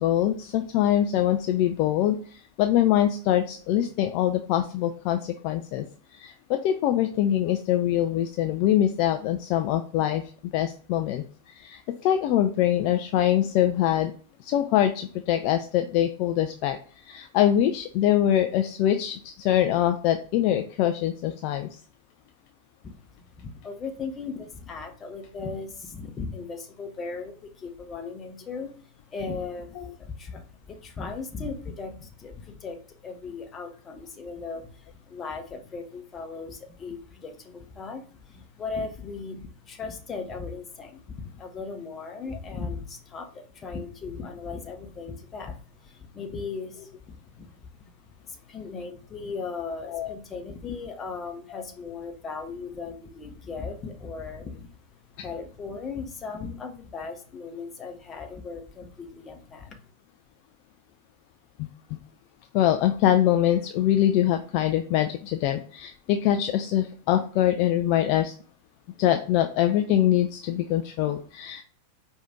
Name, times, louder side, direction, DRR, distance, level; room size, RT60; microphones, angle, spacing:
voice 1, 0.0-5.8 6.1-14.1 14.4-21.8 49.9-50.1 51.5-51.6 61.6-62.0 62.5-68.3 69.0-71.6, left 11 dB, 45° left, 6 dB, 0.3 m, -24 dB
voice 2, 23.4-47.8 48.1-54.7 55.2-59.8, left 4 dB, 25° left, 5 dB, 0.8 m, -37 dB
4.9 x 2.6 x 3.5 m, 0.43 s
figure-of-eight pair, 90°, 0 cm